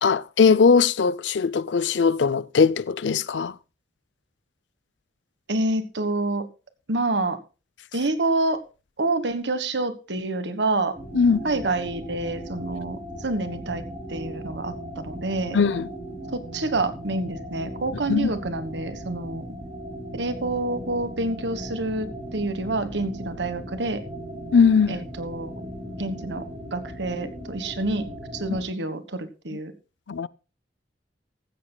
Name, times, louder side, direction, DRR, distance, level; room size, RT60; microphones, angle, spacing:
voice 1, 0.0-3.5 11.1-11.5 15.5-15.9 18.1-18.3 24.5-25.0 28.5-28.6 30.1-30.3, left 5 dB, 90° left, 0.5 m, -20 dB
voice 2, 5.5-6.5 6.9-7.4 7.9-8.6 9.0-10.9 11.4-13.8 14.1-15.6 16.3-19.4 20.1-24.0 24.9-25.5 26.0-26.4 26.7-28.1 28.3-29.7, right 2 dB, 80° right, 1.4 m, -27 dB
sound 1, 10.9-28.7, equal, 45° right, 7.8 m, -37 dB
15.5 x 13.5 x 2.3 m
head